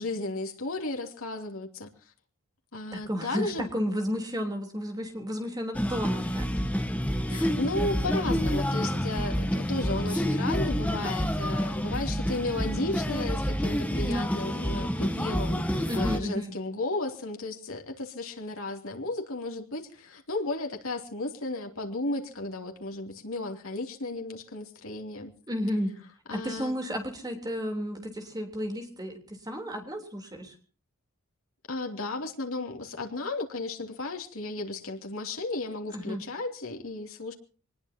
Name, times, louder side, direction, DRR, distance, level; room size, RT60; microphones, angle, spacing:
voice 1, 0.0-1.9 2.7-3.7 7.3-25.3 26.3-26.7 31.7-37.3, left 2 dB, 70° left, 3 dB, 2.9 m, -34 dB
voice 2, 2.9-6.5 15.9-16.5 25.5-26.0 26.3-30.5 35.9-36.2, equal, 15° right, 4 dB, 3.4 m, -32 dB
sound 1, 5.7-16.2, equal, 5° left, 1.1 m, -28 dB
24.5 x 20.0 x 2.8 m, 0.39 s
head